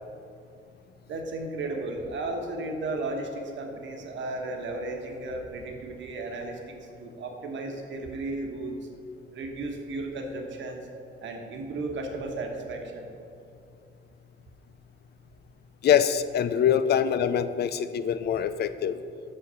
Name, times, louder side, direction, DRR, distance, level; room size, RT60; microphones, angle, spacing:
voice 1, 1.1-8.9 9.3-10.8 11.2-13.1, right 2 dB, 70° right, 2 dB, 1.3 m, -34 dB
voice 2, 15.8-19.0, left 8 dB, 55° left, 12 dB, 0.5 m, -24 dB
6.2 x 5.4 x 6.9 m, 2.5 s
cardioid pair, 90°, 20 cm